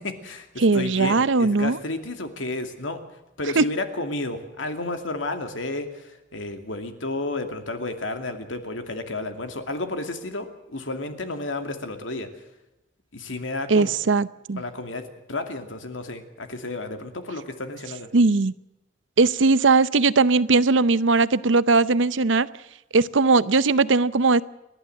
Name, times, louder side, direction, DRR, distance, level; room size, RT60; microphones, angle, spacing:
voice 1, 0.0-3.0 3.4-12.3 13.1-13.9 14.6-18.1, left 2 dB, 85° left, 7 dB, 2.5 m, -32 dB
voice 2, 0.6-1.8 3.6-3.7 13.7-14.6 18.1-18.5 19.2-22.5 22.9-24.4, right 3 dB, 75° right, 17 dB, 0.7 m, -19 dB
29.5 x 11.5 x 7.8 m, 0.97 s
head